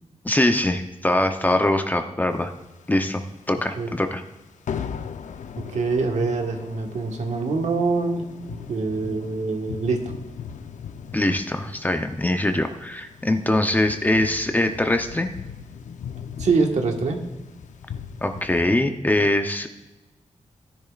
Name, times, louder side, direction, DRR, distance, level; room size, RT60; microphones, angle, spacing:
voice 1, 0.2-2.5 2.9-3.2 3.5-4.2 11.1-15.3 18.2-19.7, left 1 dB, 15° left, 6 dB, 0.7 m, -22 dB
sound 1, 2.5-3.4 3.7-3.9 4.2-4.4 4.7-18.6, left 7 dB, 85° left, 0.6 m, -38 dB
voice 2, 5.6-8.2 8.5-10.1 16.4-17.2, right 4 dB, 70° right, 3 dB, 1.5 m, -24 dB
16.0 x 10.5 x 2.4 m, 1.1 s
wide cardioid pair, 135°, 12 cm